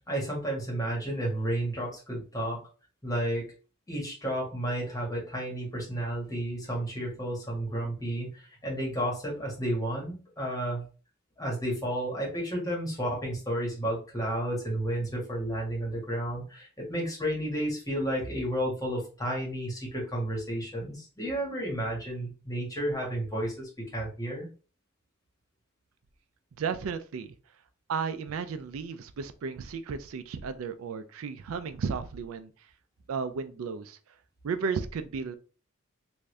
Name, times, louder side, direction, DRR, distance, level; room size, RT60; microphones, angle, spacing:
voice 1, 0.1-2.6 3.0-3.4 3.9-10.8 11.4-24.5, right 1 dB, 15° left, -3 dB, 1.5 m, -32 dB
voice 2, 26.6-27.4 27.9-32.5 33.1-34.0 34.4-35.3, right 5 dB, 80° right, 11 dB, 0.4 m, -34 dB
3.5 x 2.6 x 3.2 m, 0.36 s
head